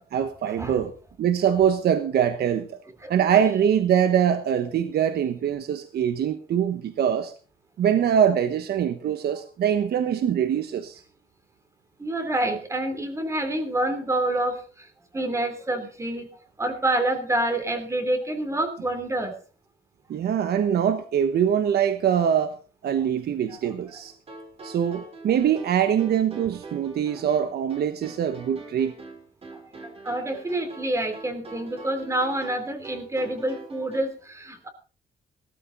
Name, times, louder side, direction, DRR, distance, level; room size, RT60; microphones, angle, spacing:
voice 1, 0.1-0.9 1.2-2.8 3.1-7.3 7.8-11.0 20.1-22.6 22.8-24.1 24.6-28.9, right 9 dB, 65° right, 9 dB, 1.2 m, -23 dB
voice 2, 3.0-3.4 12.0-14.9 15.1-16.3 16.6-19.3 23.5-23.6 30.0-34.7, right 1 dB, 15° right, 7 dB, 3.0 m, -27 dB
happy chord progression, 24.0-34.0, right 3 dB, 35° right, 3.8 m, -43 dB
17.0 x 13.5 x 3.9 m, 0.37 s
cardioid pair, 145°, 18 cm